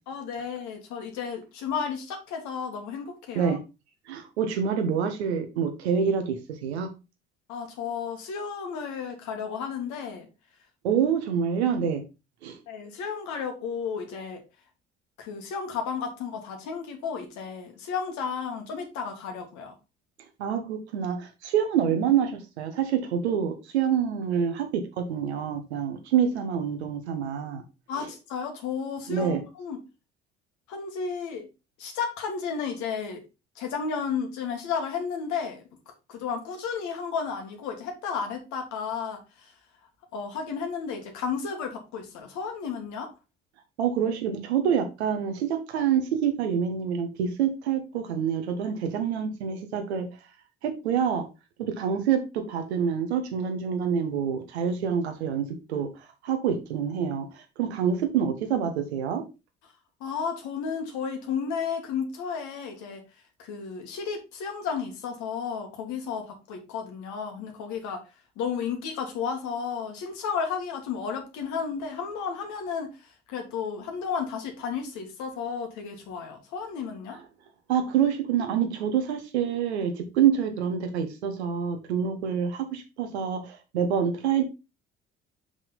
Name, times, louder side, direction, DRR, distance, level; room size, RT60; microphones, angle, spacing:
voice 1, 0.1-3.6 7.5-10.3 12.7-14.4 15.2-19.8 27.9-29.8 30.7-31.5 31.8-33.2 33.6-35.6 36.1-39.6 40.1-43.1 60.0-63.0 63.4-68.0 68.4-77.2, left 6 dB, 60° left, 1.8 m, -33 dB
voice 2, 4.1-6.9 10.8-12.0 12.4-12.6 20.4-27.6 29.1-29.4 43.8-50.1 50.6-51.2 51.6-55.9 56.2-59.2 77.7-84.4, right 8 dB, 80° right, 1.2 m, -26 dB
5.8 x 4.9 x 4.0 m
figure-of-eight pair, 55°, 32 cm